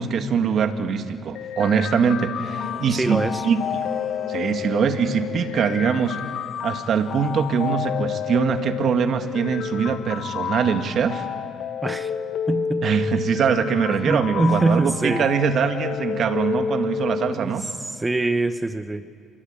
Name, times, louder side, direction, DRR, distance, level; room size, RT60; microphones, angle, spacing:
voice 1, 0.0-3.9 4.3-6.2 6.6-11.3 12.8-17.7, right 6 dB, 55° right, 7 dB, 2.0 m, -23 dB
sound 1, 1.4-17.3, left 7 dB, 65° left, 1.0 m, -30 dB
sound 2, 2.4-7.7, left 4 dB, 35° left, 5.8 m, -41 dB
voice 2, 2.9-3.5 11.8-12.1 12.5-12.9 13.9-15.3 17.3-19.1, right 2 dB, 15° right, 11 dB, 1.0 m, -24 dB
27.0 x 22.5 x 9.0 m, 2.3 s
cardioid pair, 95°, 0 cm